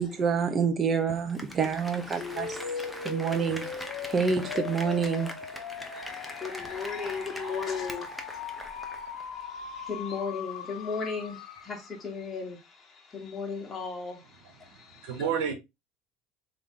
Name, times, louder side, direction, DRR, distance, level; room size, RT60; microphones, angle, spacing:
voice 1, 0.0-2.5 3.0-3.7 4.1-5.3, right 6 dB, 30° right, 1.1 m, -27 dB
Applause, 1.1-9.3 9.7-9.8, equal, ahead, 0.9 m, -42 dB
voice 2, 1.6-3.7 5.5-15.2, left 5 dB, 25° left, 1.5 m, -38 dB
sound 1, 2.3-12.1, left 6 dB, 85° left, 0.8 m, -39 dB
voice 3, 14.6-15.5, right 7 dB, 80° right, 1.5 m, -31 dB
3.7 x 3.3 x 3.7 m
supercardioid pair, 95°, 0 cm